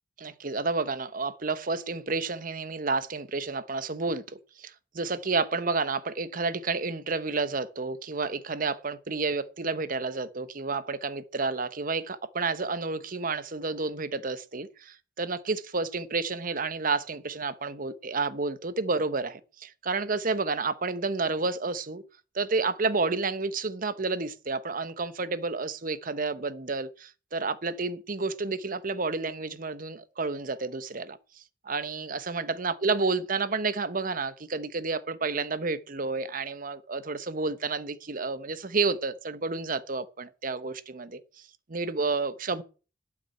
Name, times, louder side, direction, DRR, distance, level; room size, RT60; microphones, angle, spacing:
voice 1, 0.2-22.0 22.3-42.6, right 4 dB, 45° right, 0.9 m, -30 dB
12.0 x 6.0 x 9.0 m
head